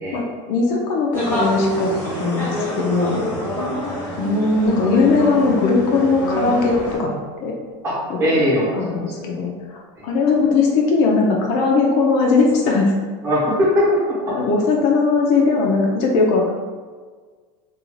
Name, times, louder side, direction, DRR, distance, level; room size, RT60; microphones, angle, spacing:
voice 1, 0.1-1.9 2.2-3.2 4.2-7.5 8.1-8.4 8.8-12.9 14.3-16.5, left 4 dB, 50° left, 0 dB, 0.4 m, -19 dB
sound 1, 1.1-7.0, equal, 15° left, 0.7 m, -26 dB
Guitar, 4.7-7.7, left 1 dB, 70° right, 0.9 m, -31 dB
voice 2, 7.8-9.2 10.0-10.1 13.2-14.3, equal, 20° right, -7 dB, 0.8 m, -20 dB
2.5 x 2.3 x 3.0 m, 1.5 s
supercardioid pair, 160°, 14 cm